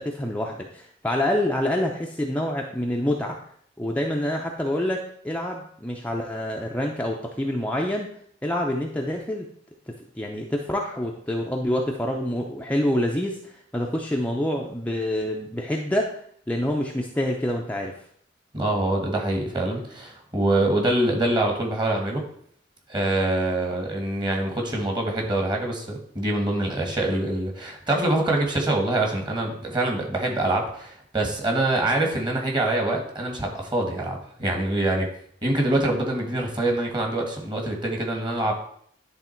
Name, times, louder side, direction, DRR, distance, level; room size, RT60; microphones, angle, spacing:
voice 1, 0.0-3.4 3.8-8.1 8.4-9.5 9.9-16.1 16.5-17.9, left 1 dB, 10° left, 0 dB, 0.6 m, -27 dB
voice 2, 18.5-22.2 22.9-35.1 35.4-38.5, right 1 dB, 25° right, 1 dB, 1.6 m, -25 dB
10.5 x 3.6 x 4.4 m, 0.63 s
head